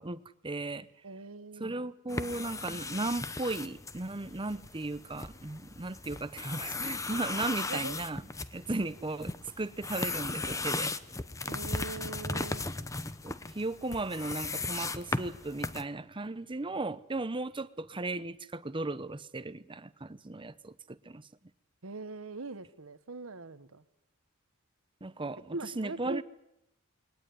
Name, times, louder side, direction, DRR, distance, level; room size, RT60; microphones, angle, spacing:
voice 1, 0.0-0.9 1.6-8.2 8.5-10.9 13.2-21.2 25.0-26.2, right 2 dB, 25° right, 0.8 m, -36 dB
voice 2, 1.0-1.8 7.7-8.0 11.5-12.7 21.8-23.8 25.5-26.2, right 3 dB, 75° right, 1.3 m, -41 dB
sound 1, 2.1-15.8, left 3 dB, 15° left, 0.9 m, -37 dB
22.0 x 19.0 x 9.4 m
head